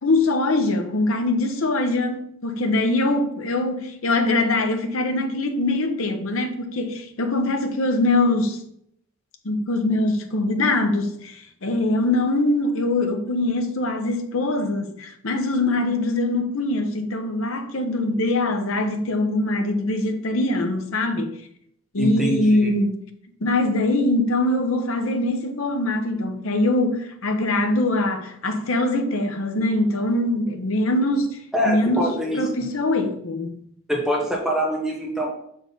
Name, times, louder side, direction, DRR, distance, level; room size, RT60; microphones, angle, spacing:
voice 1, 0.0-8.6 9.4-21.4 21.9-23.0 23.4-31.4 31.7-32.1 32.3-33.6, left 2 dB, 75° left, 0.9 m, -23 dB
voice 2, 22.0-22.7 31.5-32.4 33.9-35.3, equal, ahead, 1.3 m, -24 dB
6.1 x 4.4 x 5.3 m
head